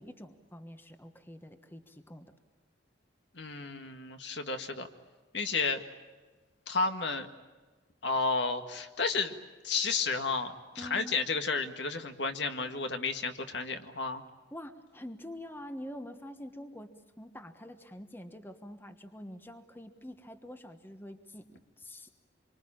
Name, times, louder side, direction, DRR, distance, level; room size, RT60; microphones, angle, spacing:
voice 1, 0.0-2.3 10.8-11.2 14.5-22.2, left 1 dB, 10° left, 7 dB, 1.3 m, -46 dB
voice 2, 3.3-4.9 5.3-5.8 6.7-7.3 8.0-9.3 9.6-14.2, left 4 dB, 70° left, 6 dB, 1.9 m, -32 dB
27.0 x 24.5 x 8.8 m, 1.3 s
head